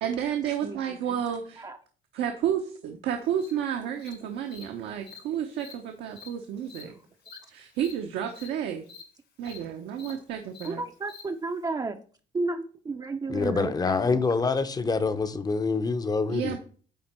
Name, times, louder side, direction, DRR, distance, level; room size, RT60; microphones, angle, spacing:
voice 1, 0.0-1.6 2.1-6.9 7.5-8.8 9.4-10.8 16.3-16.6, right 9 dB, 80° right, 1.0 m, -31 dB
voice 2, 0.6-1.2 1.6-1.8 10.6-12.0 12.3-14.2, right 3 dB, 20° right, 0.5 m, -33 dB
Cricket, 3.4-3.5 4.0-4.1 4.5-4.6 5.1-5.2 5.5-5.7 6.1-6.3 6.7-6.8 7.2-7.4 7.7-7.9 8.3-8.5 8.8-9.0 9.4-9.6 9.9-10.1 10.5-10.7 11.1-11.2, left 6 dB, 75° left, 3.2 m, -47 dB
voice 3, 13.3-16.6, left 4 dB, 25° left, 0.7 m, -26 dB
9.2 x 3.9 x 4.4 m
cardioid pair, 110°, 17 cm